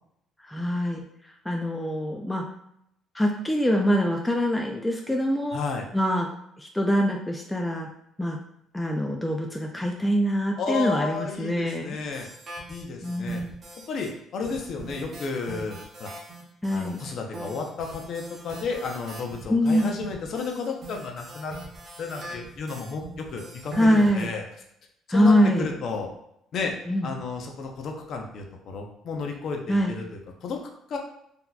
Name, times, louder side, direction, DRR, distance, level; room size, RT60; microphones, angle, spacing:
voice 1, 0.5-1.0 1.5-2.4 3.1-5.6 5.9-6.3 6.6-7.9 8.2-8.4 8.7-12.0 13.0-13.5 16.6-17.0 19.5-19.9 23.8-24.3 25.1-25.7 26.9-27.1 29.7-29.9, equal, 5° left, 1 dB, 0.3 m, -24 dB
voice 2, 5.5-5.9 10.6-12.3 12.7-13.4 13.9-16.1 16.7-21.6 22.0-24.4 25.1-26.1 26.5-26.7 27.0-30.6 30.9-31.0, left 4 dB, 50° left, 2 dB, 0.6 m, -32 dB
sound 1, 12.1-14.1 14.4-24.2, right 2 dB, 30° right, 0.8 m, -42 dB
3.9 x 2.8 x 2.3 m, 0.77 s
cardioid pair, 150°, 0 cm